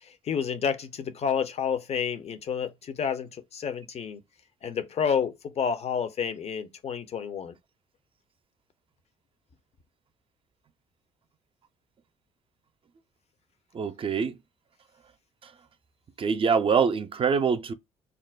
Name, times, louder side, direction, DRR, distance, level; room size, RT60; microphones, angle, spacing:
voice 1, 0.0-4.2 4.6-7.6, left 7 dB, 40° left, 0.6 m, -30 dB
voice 2, 13.7-14.4 16.2-17.7, right 6 dB, 35° right, 0.4 m, -24 dB
2.4 x 2.1 x 3.3 m
hypercardioid pair, 50°, 16 cm